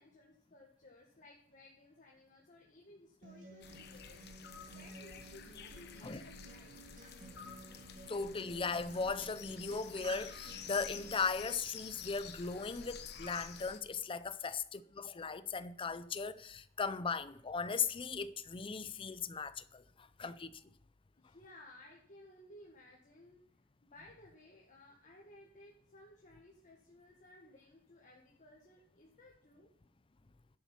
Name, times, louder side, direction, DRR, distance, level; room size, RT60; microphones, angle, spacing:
voice 1, 0.0-6.7 21.1-23.4 23.8-29.7, left 1 dB, 45° left, 1.7 m, -59 dB
Acoustic guitar, 3.2-11.2, right 2 dB, 45° right, 2.7 m, -53 dB
sound 1, 3.6-13.8, left 7 dB, 60° left, 1.0 m, -50 dB
voice 2, 8.1-20.5, left 5 dB, 30° left, 0.5 m, -38 dB
11.0 x 7.2 x 5.8 m
head